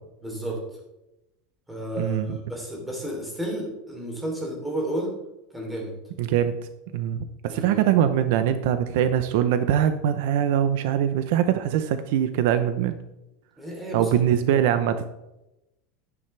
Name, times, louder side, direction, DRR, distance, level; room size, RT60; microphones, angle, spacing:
voice 1, 0.2-0.6 1.7-5.1 5.5-5.9 7.5-7.9 13.6-14.1, right 1 dB, 5° right, -1 dB, 3.1 m, -32 dB
voice 2, 2.0-2.4 6.2-6.6 6.9-13.0 13.9-15.0, right 10 dB, 65° right, 10 dB, 0.7 m, -22 dB
11.0 x 10.0 x 3.3 m, 0.93 s
supercardioid pair, 155°, 0 cm